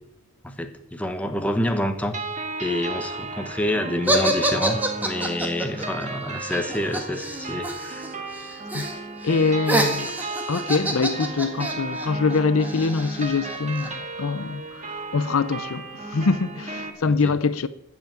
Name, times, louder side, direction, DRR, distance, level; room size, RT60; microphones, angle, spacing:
voice 1, 0.4-2.2 2.6-8.1 17.1-17.3, left 1 dB, 5° left, 1.1 m, -28 dB
sound 1, 2.1-16.9, right 3 dB, 35° right, 1.7 m, -34 dB
sound 2, 4.1-8.1 8.3-8.9 9.2-13.9, right 1 dB, 10° right, 1.5 m, -27 dB
voice 2, 9.2-10.1 10.5-17.7, left 4 dB, 80° left, 0.6 m, -24 dB
13.5 x 5.8 x 8.8 m
head